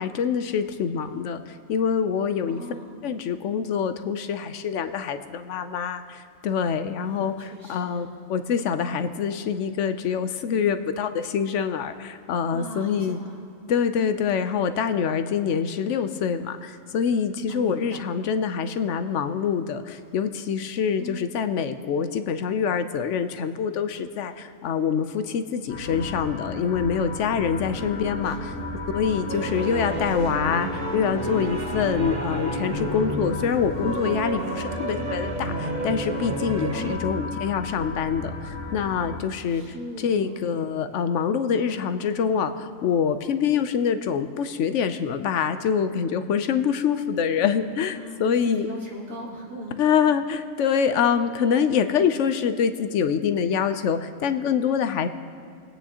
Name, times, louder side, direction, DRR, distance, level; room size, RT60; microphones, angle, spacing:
voice 1, 0.0-2.6 3.0-13.2 13.7-28.5 28.9-48.7 49.8-55.1, left 7 dB, 70° left, 10 dB, 0.9 m, -25 dB
voice 2, 2.5-2.9 7.0-8.1 12.5-13.4 17.5-18.0 21.0-21.2 27.6-28.8 36.7-37.0 39.5-40.4 47.9-49.8, equal, 80° right, -4 dB, 2.7 m, -39 dB
sound 1, 25.7-39.2, left 2 dB, 40° left, 1.2 m, -34 dB
sound 2, 29.3-37.0, right 3 dB, 40° right, 0.7 m, -31 dB
22.5 x 8.9 x 2.8 m, 2.5 s
omnidirectional pair, 1.4 m